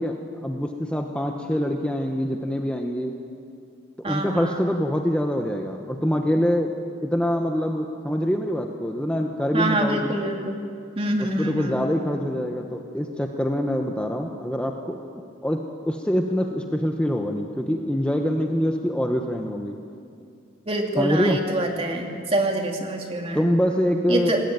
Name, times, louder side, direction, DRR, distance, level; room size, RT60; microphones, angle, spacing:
voice 1, 0.0-3.1 4.0-6.7 7.0-10.2 11.4-15.0 15.4-15.6 15.9-19.8 21.0-21.4 23.3-24.4, equal, 5° left, 3 dB, 1.1 m, -25 dB
voice 2, 4.0-4.6 9.5-10.6 11.0-11.8 20.6-23.4 24.1-24.4, right 1 dB, 30° right, 2 dB, 2.7 m, -25 dB
22.5 x 19.0 x 9.1 m, 2.4 s
head